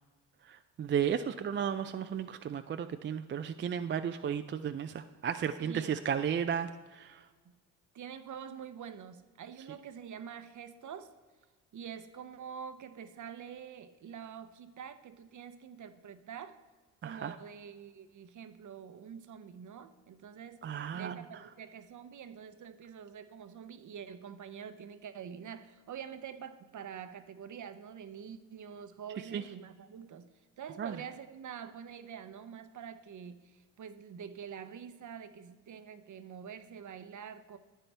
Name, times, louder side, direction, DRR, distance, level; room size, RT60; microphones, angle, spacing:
voice 1, 0.5-7.2 17.0-17.4 20.6-21.2 29.3-29.4 30.8-31.0, right 8 dB, 30° right, 9 dB, 0.4 m, -34 dB
voice 2, 5.6-6.0 7.4-7.6 7.9-11.1 11.7-16.6 17.0-20.6 20.9-30.3 30.6-37.6, right 7 dB, 45° right, 11 dB, 0.8 m, -46 dB
11.0 x 9.0 x 3.4 m, 1.4 s
supercardioid pair, 65°, 40 cm